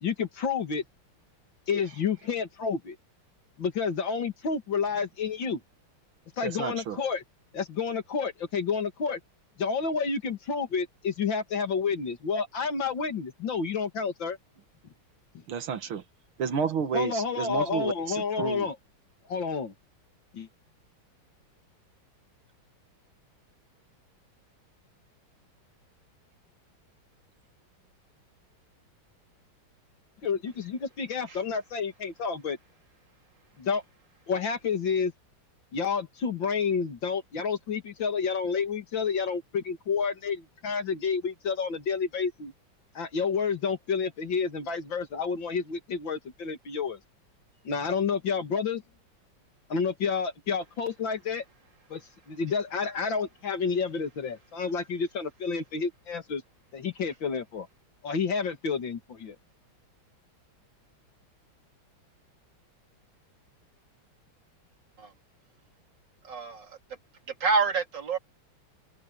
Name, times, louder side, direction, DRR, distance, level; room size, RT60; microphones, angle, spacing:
voice 1, 0.0-0.8 1.7-3.0 3.6-5.6 6.4-7.2 7.5-9.2 9.6-14.4 16.9-18.8 19.3-19.7 20.3-20.5 30.2-32.6 33.6-33.8 34.3-35.1 35.7-42.5 42.9-47.0 47.6-48.8 49.7-51.4 51.9-56.4 56.7-57.7 58.0-59.4, left 5 dB, 65° left, 2.8 m, -30 dB
voice 2, 6.4-7.0 15.5-16.0 16.4-18.7, right 6 dB, 80° right, 2.3 m, -31 dB
voice 3, 66.2-66.8 67.4-68.2, right 4 dB, 60° right, 3.5 m, -27 dB
omnidirectional pair, 2.3 m